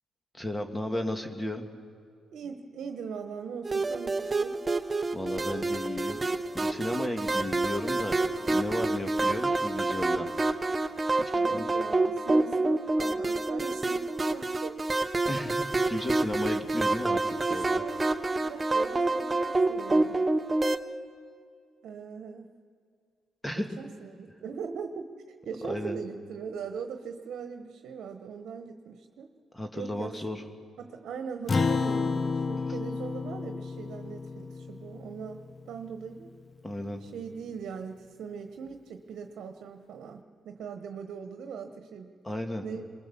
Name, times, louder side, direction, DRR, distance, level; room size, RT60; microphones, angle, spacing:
voice 1, 0.3-1.6 5.1-6.2 6.5-10.3 11.2-11.7 15.3-17.7 23.4-23.7 25.6-26.0 29.5-30.4 36.6-37.0 42.2-42.6, left 1 dB, 15° left, 4 dB, 1.9 m, -34 dB
voice 2, 2.3-4.6 11.3-14.7 15.7-16.1 17.3-20.5 21.8-22.5 23.6-25.1 25.4-29.3 29.7-30.2 30.8-36.3 37.0-42.1 42.6-42.9, right 6 dB, 70° right, 6 dB, 1.2 m, -40 dB
sound 1, 3.7-20.8, right 2 dB, 25° right, 0.9 m, -28 dB
Acoustic guitar, 31.5-36.2, left 4 dB, 30° left, 0.5 m, -31 dB
23.0 x 21.0 x 7.1 m, 2.3 s
cardioid pair, 90°, 0 cm